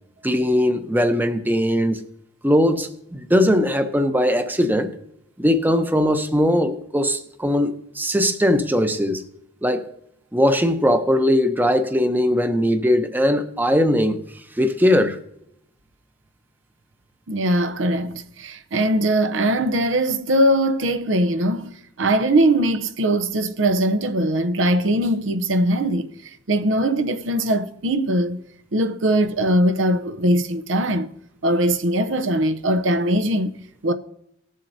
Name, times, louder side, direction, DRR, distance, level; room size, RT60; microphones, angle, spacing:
voice 1, 0.2-2.0 2.4-4.9 5.4-9.2 9.6-9.9 10.3-14.2 14.6-15.2, equal, 10° right, 0.7 m, -20 dB
voice 2, 17.3-26.1 26.5-28.4 28.7-31.1 31.4-33.5 33.8-33.9, right 1 dB, 80° right, 0.7 m, -21 dB
19.0 x 7.4 x 2.7 m
head